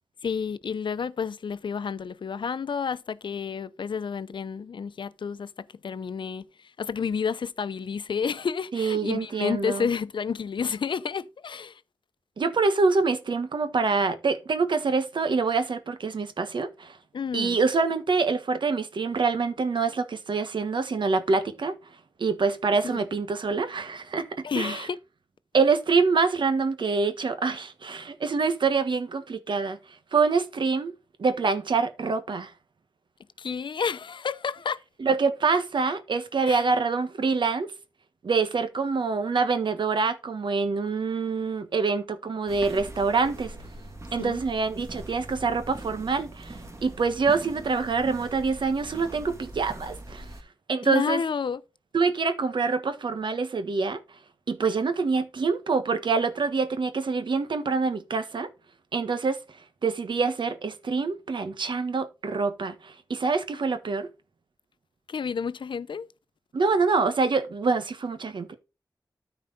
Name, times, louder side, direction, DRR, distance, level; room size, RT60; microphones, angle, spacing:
voice 1, 0.2-11.8 17.1-17.6 22.8-23.0 24.4-25.0 33.4-34.8 36.4-36.6 44.2-44.4 50.8-51.6 65.1-66.1, left 6 dB, 85° left, 0.6 m, -30 dB
voice 2, 8.7-9.9 12.4-17.0 17.3-21.7 22.2-24.9 25.5-29.8 30.1-30.9 31.2-32.5 35.0-37.7 38.2-43.5 44.1-50.2 50.7-51.2 51.9-54.0 54.5-58.5 58.9-59.4 59.8-64.1 66.5-68.6, right 4 dB, 80° right, 1.5 m, -25 dB
sound 1, 42.5-50.4, right 1 dB, 35° right, 2.2 m, -42 dB
13.0 x 4.8 x 4.1 m
wide cardioid pair, 85°, 8 cm